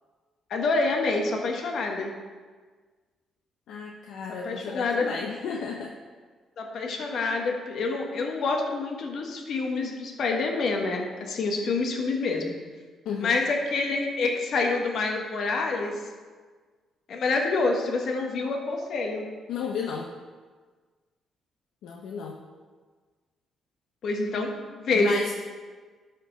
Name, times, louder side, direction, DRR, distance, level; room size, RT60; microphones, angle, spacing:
voice 1, 0.5-2.1 4.4-5.1 6.6-12.6 13.2-15.9 17.1-19.3 24.0-25.2, left 3 dB, 65° left, 2 dB, 1.3 m, -27 dB
voice 2, 3.7-5.9 13.0-13.4 19.5-20.1 21.8-22.4 24.9-25.3, left 6 dB, 80° left, 0 dB, 0.7 m, -33 dB
12.5 x 4.5 x 3.9 m, 1.5 s
cardioid pair, 90°, 0 cm